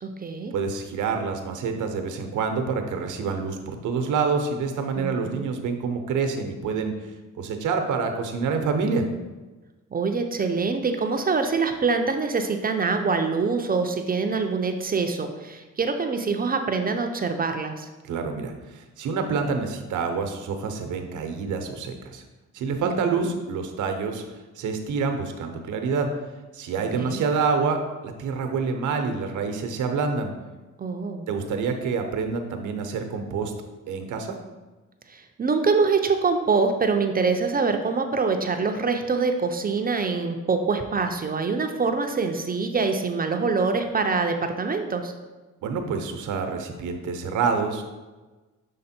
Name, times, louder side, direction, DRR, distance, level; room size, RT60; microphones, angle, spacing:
voice 1, 0.0-0.5 4.9-5.5 9.9-17.9 22.8-23.3 27.0-27.3 30.8-31.3 35.1-45.1, right 4 dB, 30° right, 5 dB, 0.6 m, -25 dB
voice 2, 0.5-6.9 7.4-9.0 18.0-22.2 22.5-24.2 24.6-26.1 26.5-30.3 31.3-33.5 33.9-34.4 45.6-47.8, right 5 dB, 80° right, 5 dB, 0.8 m, -27 dB
6.6 x 3.5 x 4.3 m, 1.2 s
cardioid pair, 90°, 30 cm